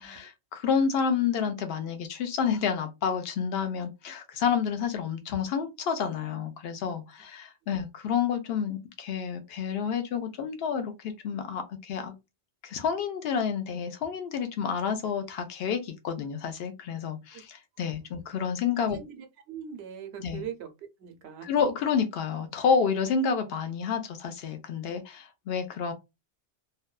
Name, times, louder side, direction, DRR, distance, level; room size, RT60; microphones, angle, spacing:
voice 1, 0.0-12.1 12.6-19.0 20.2-20.4 21.4-25.9, left 6 dB, 65° left, 0.8 m, -29 dB
voice 2, 18.8-20.7 21.0-21.5, right 8 dB, 75° right, 0.8 m, -41 dB
2.7 x 2.1 x 2.2 m
omnidirectional pair, 1.1 m